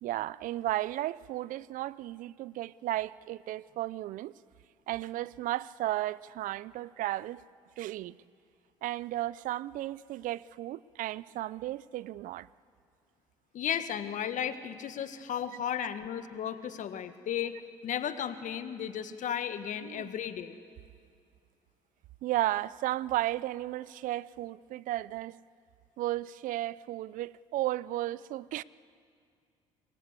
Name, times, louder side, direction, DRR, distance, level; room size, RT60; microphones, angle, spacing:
voice 1, 0.0-4.3 4.9-7.4 7.8-8.2 8.8-12.5 19.8-20.1 22.2-25.4 26.0-28.6, right 15 dB, 60° right, 0.5 m, -34 dB
voice 2, 13.5-17.6 17.8-20.5, left 9 dB, 55° left, 1.6 m, -34 dB
26.5 x 21.5 x 8.2 m
hypercardioid pair, 55°, 15 cm